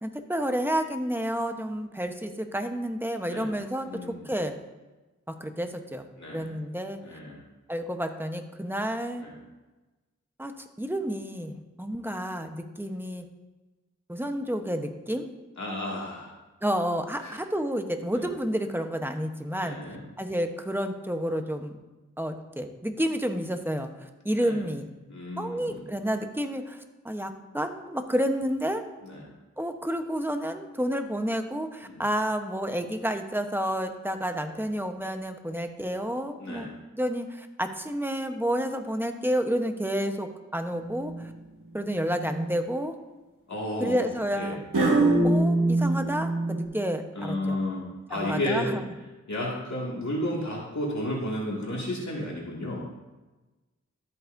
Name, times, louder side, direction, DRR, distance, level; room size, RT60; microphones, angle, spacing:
voice 1, 0.0-3.9 4.2-4.5 5.3-6.0 6.3-7.0 7.7-9.3 10.4-10.5 10.8-13.2 14.1-15.3 16.6-19.8 20.2-21.8 22.2-23.9 24.2-24.9 25.4-28.8 29.6-36.7 36.9-41.1 41.7-43.0 43.8-44.6 45.2-47.6 48.1-48.8, equal, 5° right, 6 dB, 1.0 m, -30 dB
voice 2, 3.8-4.2 6.2-6.5 7.0-7.4 9.2-9.3 15.6-16.3 17.2-17.4 18.1-18.3 19.6-20.0 24.4-24.6 25.1-25.9 29.0-29.3 31.9-32.0 36.4-36.7 43.5-44.6 45.0-45.2 47.1-48.8 49.3-52.9, left 1 dB, 65° left, -4 dB, 2.2 m, -32 dB
sound 1, 40.8-41.3 41.9-42.5 44.7-46.6, right 2 dB, 85° right, 2.4 m, -24 dB
13.0 x 8.1 x 2.7 m, 1.2 s
cardioid pair, 40°, 31 cm